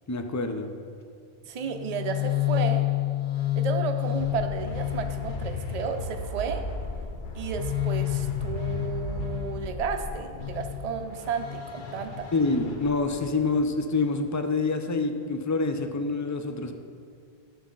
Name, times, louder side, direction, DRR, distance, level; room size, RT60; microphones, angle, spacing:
voice 1, 0.1-0.7 12.3-16.7, left 3 dB, 30° left, 6 dB, 0.3 m, -26 dB
voice 2, 1.5-2.9 3.6-6.7 7.3-12.3, right 6 dB, 45° right, 6 dB, 0.6 m, -33 dB
sound 1, 1.6-13.5, left 10 dB, 50° left, 0.9 m, -30 dB
11.5 x 7.3 x 3.8 m, 2.2 s
omnidirectional pair, 1.1 m